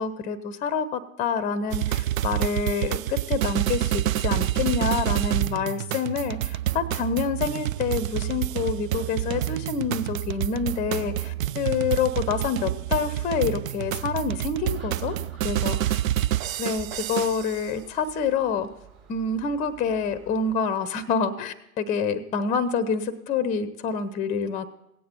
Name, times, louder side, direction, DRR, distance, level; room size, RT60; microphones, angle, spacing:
voice 1, 0.0-15.2 15.4-15.9 16.6-18.7 19.1-24.7, left 5 dB, 20° left, 15 dB, 0.6 m, -27 dB
sound 1, 1.7-17.6, right 13 dB, 70° right, 0.5 m, -28 dB
Gull seagull, 14.7-20.5, right 7 dB, 45° right, 4.2 m, -49 dB
17.0 x 8.4 x 4.4 m, 0.85 s
figure-of-eight pair, 95°, 43 cm